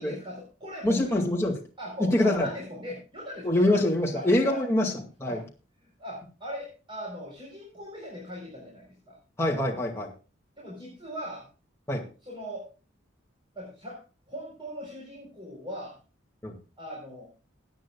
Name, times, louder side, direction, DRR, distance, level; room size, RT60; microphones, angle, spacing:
voice 1, 0.0-1.1 1.8-3.6 4.1-4.6 5.3-5.4 6.0-9.2 10.6-11.5 12.2-12.7 13.5-14.0 14.3-16.0 16.8-17.3, equal, 25° right, -3 dB, 4.2 m, -40 dB
voice 2, 0.8-1.6 2.0-2.5 3.4-4.9 5.2-5.4 9.4-10.1 11.9-12.0 16.4-16.6, left 1 dB, 15° left, -1 dB, 2.2 m, -24 dB
21.5 x 9.2 x 2.4 m, 0.34 s
head